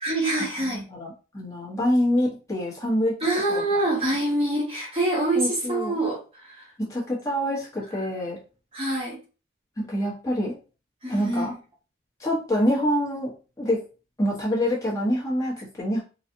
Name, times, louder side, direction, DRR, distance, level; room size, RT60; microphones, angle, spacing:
voice 1, 0.0-0.8 3.2-6.7 8.7-9.2 11.0-11.6, right 2 dB, 30° right, -3 dB, 1.0 m, -26 dB
voice 2, 0.9-3.2 3.5-3.6 5.3-5.9 6.8-8.4 9.8-10.6 11.1-11.5 12.2-13.3 13.6-13.8 14.2-16.0, equal, 15° left, -6 dB, 1.1 m, -26 dB
4.0 x 2.4 x 2.7 m, 0.34 s
head